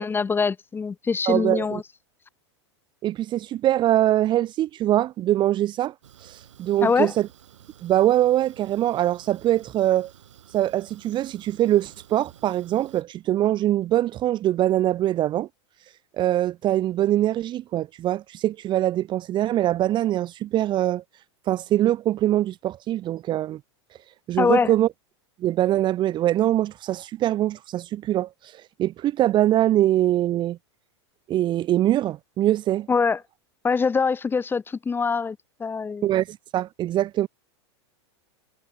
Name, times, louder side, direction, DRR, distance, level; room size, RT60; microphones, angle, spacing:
voice 1, 0.0-1.8 6.8-7.1 24.4-24.7 32.9-33.2 33.6-36.1, left 5 dB, 15° left, 1.0 m, -23 dB
voice 2, 1.3-1.8 3.0-5.9 6.2-7.3 7.8-10.1 10.5-15.5 16.2-21.0 21.5-23.6 24.3-24.9 25.4-28.3 28.8-30.6 31.3-32.9 36.0-37.3, right 13 dB, 30° right, 0.7 m, -23 dB
Fire, 6.0-13.0, right 10 dB, 85° right, 4.1 m, -52 dB
hypercardioid pair, 125°, 15 cm